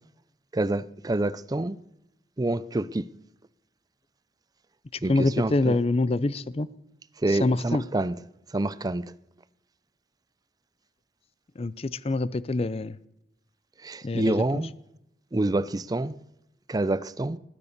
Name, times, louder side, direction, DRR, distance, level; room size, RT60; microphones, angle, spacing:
voice 1, 0.5-1.8 2.4-3.1 5.0-5.8 7.2-8.2 8.5-9.1 13.8-14.7 15.3-16.2 16.7-17.4, right 2 dB, 20° right, 0.4 m, -27 dB
voice 2, 5.1-6.7 7.3-7.8 11.6-13.0 14.0-14.6, left 2 dB, 35° left, 0.5 m, -26 dB
19.5 x 9.7 x 6.6 m
head